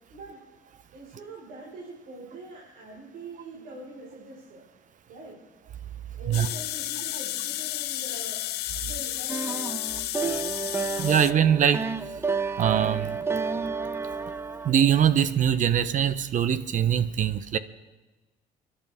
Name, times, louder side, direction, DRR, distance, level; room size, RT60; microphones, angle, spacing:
voice 1, 0.1-0.4 0.9-4.6 5.1-5.4 6.1-8.4 8.7-9.7, right 2 dB, 80° right, 4.7 m, -43 dB
sound 1, 6.3-11.3, left 14 dB, 75° left, 0.7 m, -32 dB
sound 2, 9.3-15.2, right 4 dB, 15° right, 0.6 m, -31 dB
voice 2, 11.0-11.9 12.6-13.3 14.6-17.6, right 9 dB, 50° right, 0.8 m, -22 dB
30.0 x 11.5 x 3.6 m
cardioid pair, 110°, 17 cm